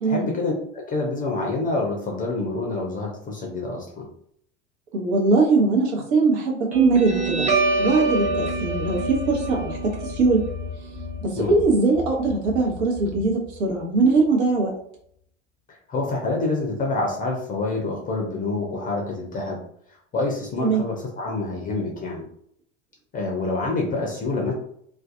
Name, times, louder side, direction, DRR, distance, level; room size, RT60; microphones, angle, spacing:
voice 1, 0.1-4.1 11.4-11.6 15.7-19.6 20.1-22.3 23.1-24.5, left 3 dB, 25° left, -1 dB, 0.5 m, -27 dB
voice 2, 4.9-7.5 7.8-10.4 11.2-14.7 20.6-20.8, right 3 dB, 60° right, -1 dB, 0.9 m, -21 dB
Guitar, 6.7-13.7, right 2 dB, 20° right, 0.7 m, -27 dB
2.5 x 2.2 x 2.5 m, 0.67 s
figure-of-eight pair, 75°, 37 cm